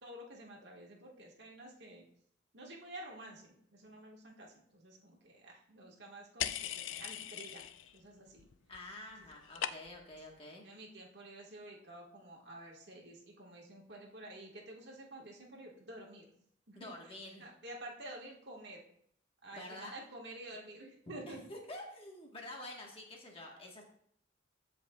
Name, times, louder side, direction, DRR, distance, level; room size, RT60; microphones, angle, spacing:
voice 1, 0.0-2.0 2.5-7.6 7.9-8.5 10.6-16.3 16.7-17.1 17.4-18.8 19.4-21.4, right 1 dB, 60° right, -1 dB, 1.6 m, -50 dB
sound 1, 6.4-8.0 8.3-8.8 9.1-10.2, left 10 dB, 80° left, 0.4 m, -40 dB
voice 2, 8.7-10.6 16.7-17.4 19.5-19.9 21.3-23.8, left 1 dB, 30° left, -1 dB, 1.3 m, -48 dB
14.5 x 5.2 x 2.3 m, 0.67 s
head